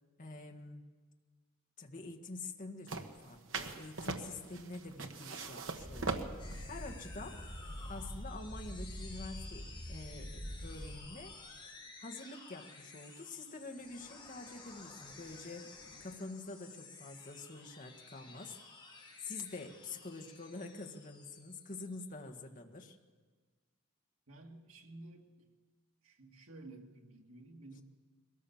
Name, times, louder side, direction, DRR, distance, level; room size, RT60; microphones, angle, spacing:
voice 1, 0.2-0.9 1.8-6.3 6.7-7.4 7.8-11.3 12.0-15.7 16.0-18.6 19.2-23.0, left 3 dB, 40° left, 4 dB, 1.7 m, -47 dB
sound 1, 2.9-8.2, right 4 dB, 65° right, 1.4 m, -42 dB
sound 2, 5.7-10.9, equal, 10° right, 6.9 m, -45 dB
sound 3, 6.4-22.2, left 4 dB, 20° left, 5.5 m, -54 dB
voice 2, 24.3-25.5 26.0-27.8, right 2 dB, 85° right, 2 dB, 2.3 m, -53 dB
22.0 x 17.5 x 7.2 m, 1.4 s
head